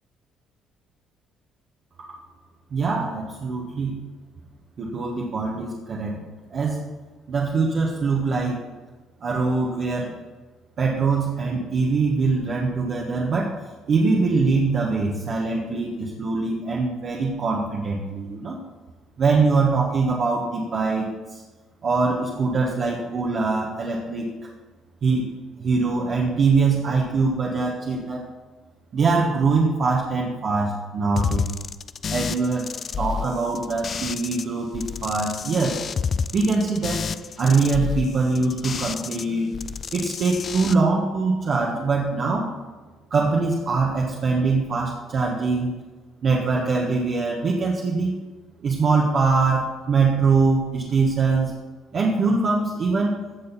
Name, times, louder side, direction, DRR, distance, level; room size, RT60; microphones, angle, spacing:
voice 1, 2.7-4.0 4.8-6.2 6.5-6.8 7.3-8.6 9.2-10.1 10.8-13.5 13.9-18.6 19.2-21.4 21.8-24.3 25.0-25.2 25.6-28.2 28.9-31.5 32.1-32.7 33.0-35.8 36.3-37.0 37.4-39.5 39.9-42.5 43.1-45.7 46.2-48.1 48.6-51.5 51.9-53.2, right 4 dB, 40° right, -3 dB, 1.4 m, -23 dB
sound 1, 31.2-34.4 34.7-39.2 39.5-40.7, left 6 dB, 35° left, 0.4 m, -30 dB
16.0 x 6.5 x 4.2 m, 1.3 s
cardioid pair, 150°, 0 cm